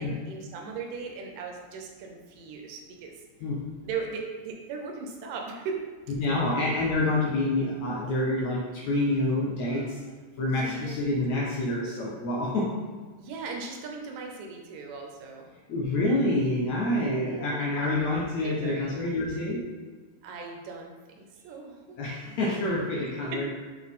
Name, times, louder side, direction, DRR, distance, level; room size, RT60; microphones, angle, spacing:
voice 1, 0.0-3.1 3.8-5.8 6.1-6.2 10.5-11.0 13.2-15.5 17.0-18.1 18.4-18.9 20.2-22.0 22.3-22.8 23.0-23.5, right 5 dB, 80° right, 2 dB, 2.3 m, -38 dB
voice 2, 6.2-10.0 10.4-12.7 15.7-19.7 22.0-23.5, left 2 dB, 70° left, -5 dB, 1.8 m, -27 dB
6.4 x 4.1 x 3.6 m, 1.4 s
omnidirectional pair, 4.0 m